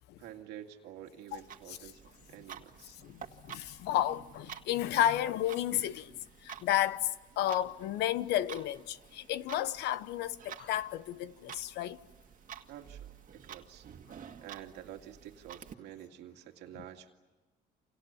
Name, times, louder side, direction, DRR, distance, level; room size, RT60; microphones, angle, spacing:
voice 1, 0.2-2.0 2.3-2.9 12.7-13.9 14.4-17.1, right 11 dB, 85° right, 2.4 m, -49 dB
Clock, 1.3-15.7, right 8 dB, 50° right, 1.9 m, -51 dB
voice 2, 3.0-6.1 6.4-7.1 7.4-12.0, left 12 dB, 80° left, 1.0 m, -32 dB
29.5 x 27.5 x 7.2 m
cardioid pair, 110°, 17 cm